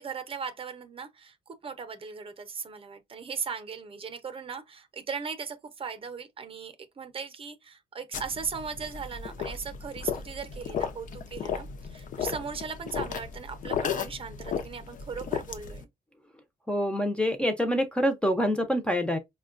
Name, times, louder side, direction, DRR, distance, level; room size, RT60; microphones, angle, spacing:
voice 1, 0.0-15.9, right 6 dB, 35° right, 0.7 m, -38 dB
sound 1, 8.1-15.8, left 7 dB, 55° left, 0.6 m, -35 dB
voice 2, 16.7-19.2, equal, 5° left, 0.5 m, -26 dB
5.2 x 2.2 x 2.4 m
cardioid pair, 140°, 16 cm